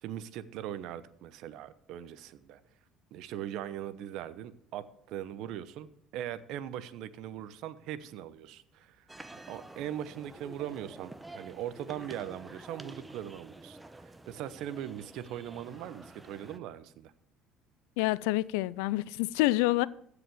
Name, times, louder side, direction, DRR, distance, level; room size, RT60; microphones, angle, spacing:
voice 1, 0.0-2.6 3.1-9.1 9.3-17.1, right 11 dB, 70° right, 0.9 m, -40 dB
sound 1, 9.1-16.6, right 2 dB, 10° right, 0.9 m, -49 dB
voice 2, 18.0-19.9, left 18 dB, 80° left, 0.4 m, -27 dB
15.0 x 5.0 x 8.5 m
supercardioid pair, 75°, 0 cm